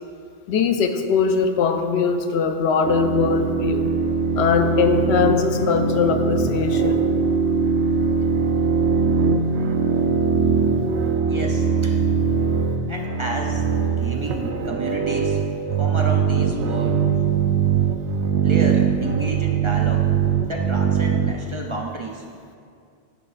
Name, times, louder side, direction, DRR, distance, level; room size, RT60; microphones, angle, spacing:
voice 1, 0.5-3.9 4.4-7.1, left 6 dB, 80° left, 7 dB, 0.9 m, -21 dB
sound 1, 2.8-21.3, right 6 dB, 85° right, 0.9 m, -21 dB
voice 2, 11.3-12.0 12.9-15.4 15.8-17.0 18.4-20.1 20.4-22.3, right 2 dB, 35° right, 0 dB, 0.5 m, -31 dB
10.5 x 8.0 x 2.5 m, 2.3 s
omnidirectional pair, 1.1 m